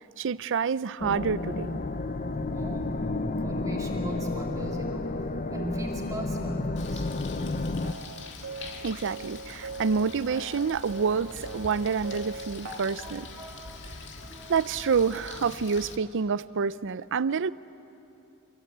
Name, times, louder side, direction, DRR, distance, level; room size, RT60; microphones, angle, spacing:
voice 1, 0.2-1.8 8.8-13.3 14.5-17.5, right 5 dB, 55° right, 17 dB, 0.5 m, -28 dB
sound 1, 1.0-7.9, left 2 dB, 40° left, 0.8 m, -31 dB
voice 2, 2.2-2.9 3.4-5.1 5.5-7.0 12.7-14.8, equal, 15° right, -1 dB, 2.8 m, -38 dB
Bird, 6.8-16.0, left 3 dB, 55° left, 1.8 m, -44 dB
sound 2, 7.8-12.8, right 3 dB, 85° right, 1.9 m, -41 dB
27.5 x 22.0 x 8.7 m, 2.9 s
head